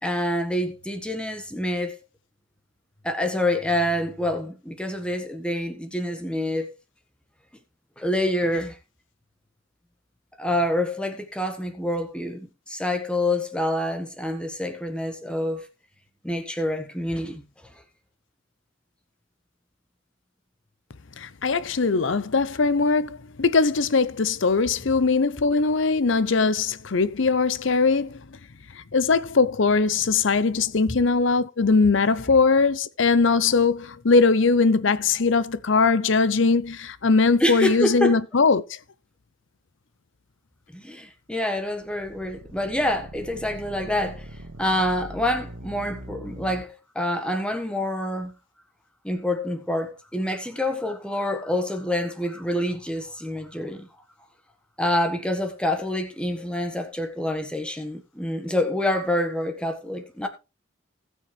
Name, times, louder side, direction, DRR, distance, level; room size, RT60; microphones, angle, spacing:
voice 1, 0.0-2.0 3.0-6.7 8.0-8.8 10.4-15.7 16.2-17.4 17.7-17.8 37.4-38.2 40.7-48.3 49.0-53.9 54.8-60.3, left 1 dB, 5° left, 1.4 m, -27 dB
voice 2, 21.2-28.2 28.7-38.8, left 4 dB, 65° left, 0.7 m, -21 dB
sound 1, 41.6-46.6, right 1 dB, 75° right, 1.8 m, -41 dB
19.0 x 6.4 x 3.3 m
head